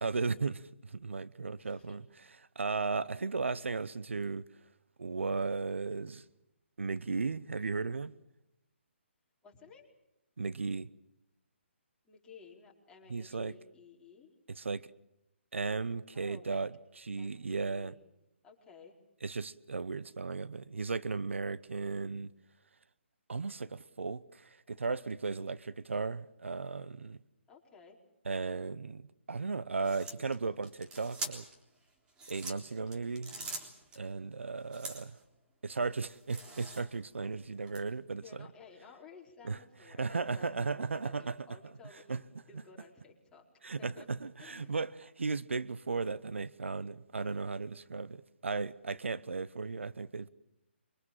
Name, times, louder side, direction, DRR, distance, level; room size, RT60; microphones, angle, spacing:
voice 1, 0.0-2.0 2.4-4.4 5.0-6.2 6.8-8.1 10.4-10.9 13.1-13.5 14.5-14.9 15.5-17.9 19.2-22.3 23.3-27.2 28.2-31.4 32.3-33.3 34.0-35.2 35.6-38.5 39.4-39.6 39.9-41.4 42.1-42.2 43.6-50.3, right 4 dB, 75° right, 0.9 m, -36 dB
voice 2, 1.6-2.0 9.4-9.9 12.0-14.3 16.1-16.6 17.2-18.0 18.4-18.9 27.5-28.0 38.2-43.4 43.8-44.1 44.4-44.7, left 5 dB, 10° left, 4.4 m, -55 dB
sound 1, 29.8-31.6 32.1-34.0 34.7-35.2 35.7-37.1 37.7-37.8, right 3 dB, 15° right, 3.5 m, -44 dB
25.0 x 24.0 x 7.5 m
figure-of-eight pair, 140°, 7 cm